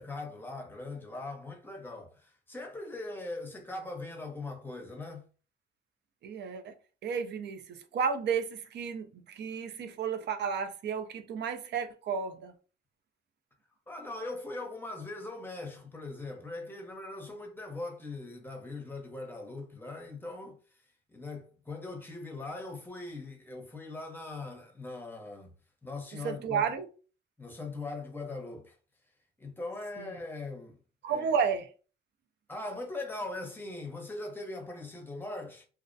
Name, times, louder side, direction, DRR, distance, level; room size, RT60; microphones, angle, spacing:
voice 1, 0.0-5.2 13.9-20.6 21.1-25.5 25.8-26.6 27.4-28.8 29.4-30.8 31.1-31.3 32.5-35.7, left 2 dB, 10° left, 0.7 m, -40 dB
voice 2, 6.2-6.7 7.0-12.5 26.1-26.9 30.0-30.2 31.0-31.7, right 6 dB, 60° right, 0.5 m, -32 dB
2.4 x 2.0 x 2.5 m
cardioid pair, 90°, 20 cm